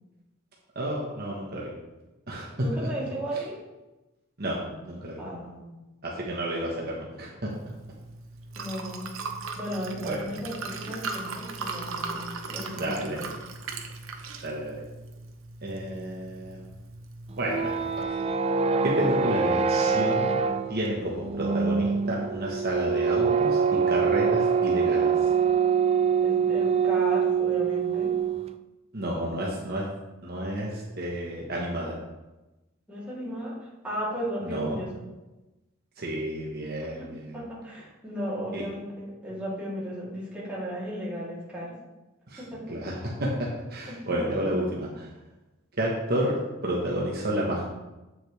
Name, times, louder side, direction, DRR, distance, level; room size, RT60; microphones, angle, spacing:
voice 1, 0.7-1.7 2.3-2.9 3.3-3.4 4.4-5.2 6.0-7.5 10.0-10.3 12.7-13.2 14.4-14.8 15.6-16.7 17.4-18.1 18.8-20.3 20.7-25.3 28.9-29.9 30.2-31.9 34.4-34.8 36.0-37.4 38.5-38.6 42.3-42.4 42.7-45.1 45.8-46.4 46.6-47.7, right 1 dB, 50° right, -3 dB, 1.2 m, -31 dB
voice 2, 2.6-3.6 5.2-5.7 8.5-9.1 9.5-13.1 26.2-28.1 32.9-35.0 37.0-37.1 37.3-41.8 42.4-42.6 43.9-44.3, equal, 5° right, -9 dB, 3.1 m, -35 dB
Liquid, 7.5-18.0, right 4 dB, 70° right, 0.9 m, -39 dB
sound 1, 17.3-28.5, right 6 dB, 30° right, 0.3 m, -24 dB
8.3 x 7.7 x 3.4 m, 1.1 s
head